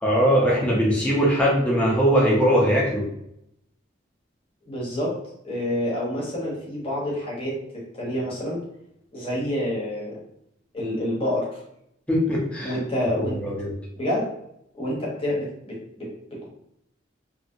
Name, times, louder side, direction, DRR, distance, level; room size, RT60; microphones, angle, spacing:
voice 1, 0.0-3.1 12.1-12.7 13.1-13.7, equal, 5° left, -5 dB, 0.8 m, -21 dB
voice 2, 4.7-5.2 5.4-8.6 9.1-10.2 10.7-11.6 12.6-13.4 13.9-14.3 14.7-16.5, left 1 dB, 30° left, -5 dB, 1.0 m, -28 dB
2.8 x 2.6 x 2.7 m, 0.77 s
head